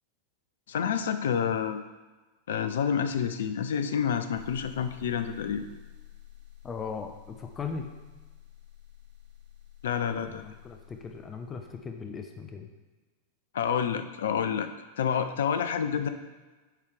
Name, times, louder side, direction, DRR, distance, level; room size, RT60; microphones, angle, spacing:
voice 1, 0.7-1.8 2.5-5.6 9.8-10.4 13.5-14.7 15.0-16.1, left 7 dB, 60° left, 10 dB, 0.5 m, -28 dB
sound 1, 4.3-12.1, left 12 dB, 55° right, 1.5 m, -51 dB
voice 2, 6.6-7.9 10.2-12.7, left 5 dB, 20° left, 5 dB, 0.6 m, -38 dB
9.2 x 4.7 x 3.4 m, 1.3 s
figure-of-eight pair, 90°, 0 cm